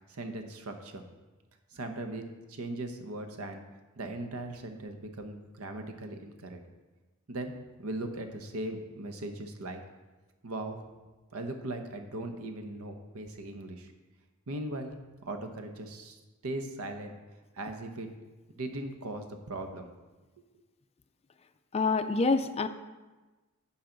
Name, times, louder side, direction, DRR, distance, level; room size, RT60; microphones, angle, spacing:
voice 1, 0.1-1.0 1.7-3.6 4.0-6.6 7.3-9.8 10.4-10.8 11.3-13.9 14.5-14.9 15.2-17.2 17.5-18.1 18.6-19.9 20.4-20.5, right 2 dB, 75° right, 6 dB, 0.9 m, -39 dB
voice 2, 21.7-22.7, left 3 dB, 30° left, 10 dB, 0.4 m, -26 dB
10.0 x 5.7 x 3.9 m, 1.2 s
head